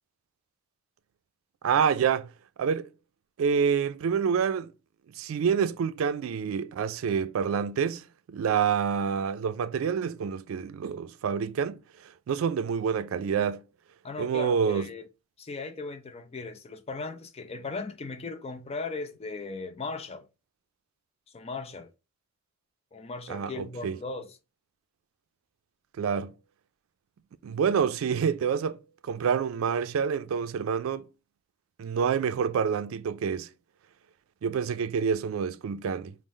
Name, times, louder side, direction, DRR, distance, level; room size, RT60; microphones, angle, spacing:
voice 1, 1.6-2.3 2.6-2.9 3.4-4.7 5.2-11.8 12.3-13.6 14.2-14.9 23.3-24.0 26.0-26.3 27.4-31.0 31.8-33.5 34.4-36.1, right 7 dB, 90° right, 0.3 m, -27 dB
voice 2, 14.0-15.1 15.4-20.3 21.3-21.9 22.9-24.4, left 3 dB, 30° left, 0.5 m, -37 dB
5.4 x 2.0 x 3.0 m
head